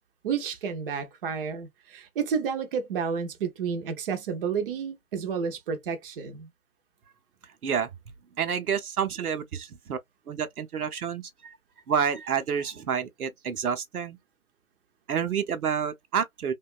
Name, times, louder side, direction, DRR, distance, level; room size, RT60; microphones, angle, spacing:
voice 1, 0.2-6.5, right 6 dB, 40° right, 0.6 m, -31 dB
voice 2, 8.4-10.0 10.3-11.6 11.9-14.2 15.1-16.5, right 7 dB, 85° right, 0.7 m, -29 dB
2.8 x 2.2 x 2.3 m
figure-of-eight pair, 130°, 43 cm